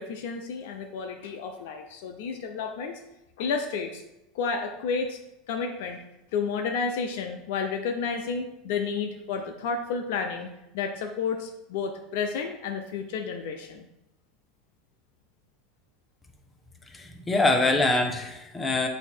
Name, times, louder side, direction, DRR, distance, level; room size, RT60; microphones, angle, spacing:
voice 1, 0.0-3.0 3.4-4.0 4.3-5.2 5.5-6.0 6.3-10.5 10.7-13.9, left 5 dB, 70° left, 4 dB, 0.6 m, -31 dB
voice 2, 16.9-18.9, left 2 dB, 15° left, 3 dB, 1.0 m, -24 dB
7.8 x 2.8 x 4.4 m, 0.89 s
hypercardioid pair, 100°, 0 cm